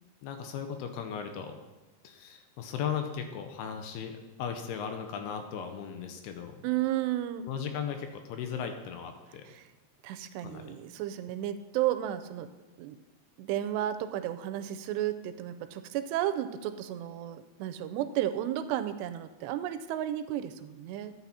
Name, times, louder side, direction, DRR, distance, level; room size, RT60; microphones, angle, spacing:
voice 1, 0.2-1.6 2.0-6.7 7.4-9.5 10.4-10.7, left 7 dB, 75° left, 6 dB, 2.7 m, -37 dB
voice 2, 6.6-7.4 9.5-9.6 10.0-12.5 12.8-13.0 13.4-21.1, right 12 dB, 90° right, 10 dB, 2.8 m, -33 dB
11.5 x 8.8 x 4.2 m, 1.1 s
omnidirectional pair, 4.8 m